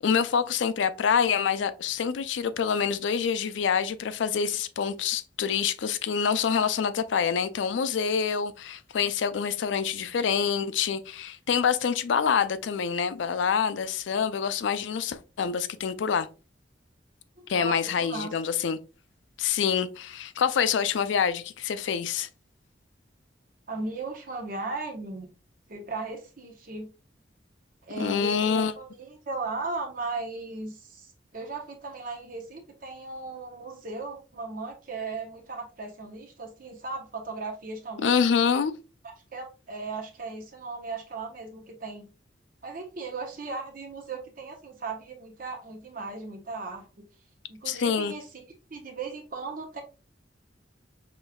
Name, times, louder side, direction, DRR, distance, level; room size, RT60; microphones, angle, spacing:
voice 1, 0.0-16.3 17.5-18.8 19.4-22.3 28.0-28.7 38.0-38.7 47.7-48.1, left 7 dB, 75° left, 0.4 m, -26 dB
voice 2, 17.4-18.3 23.7-25.3 25.7-26.9 27.8-38.3 39.3-42.1 42.6-47.1 47.5-48.4 48.7-49.8, right 3 dB, 50° right, 0.9 m, -37 dB
5.0 x 3.1 x 2.3 m
head